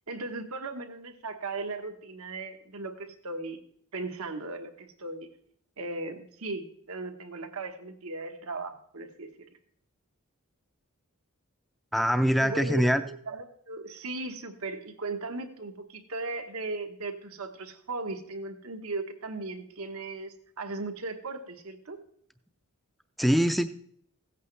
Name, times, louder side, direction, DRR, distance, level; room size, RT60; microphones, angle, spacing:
voice 1, 0.1-3.6 3.9-5.3 5.8-9.3 12.4-22.0, right 3 dB, 80° right, 6 dB, 1.2 m, -37 dB
voice 2, 11.9-13.0 23.2-23.6, equal, ahead, 9 dB, 0.4 m, -23 dB
16.0 x 8.3 x 3.3 m, 0.65 s
head